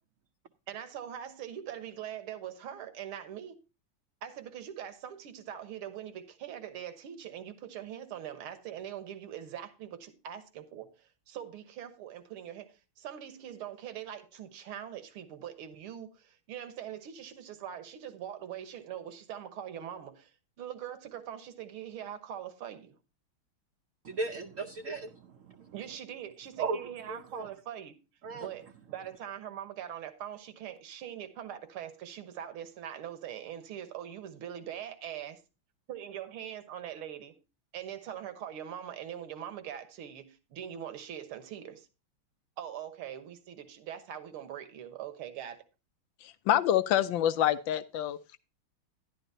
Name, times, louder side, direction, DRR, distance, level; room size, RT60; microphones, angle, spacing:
voice 1, 0.7-3.6 4.2-20.3 20.6-23.0 25.7-27.9 28.3-35.3 35.9-37.3 37.7-41.9 42.6-45.6, right 10 dB, 85° right, 2.0 m, -42 dB
voice 2, 24.0-25.7 26.6-27.5 28.2-28.5, right 4 dB, 65° right, 0.8 m, -36 dB
voice 3, 46.2-48.2, left 11 dB, 75° left, 1.3 m, -27 dB
12.0 x 11.0 x 2.7 m
omnidirectional pair, 2.3 m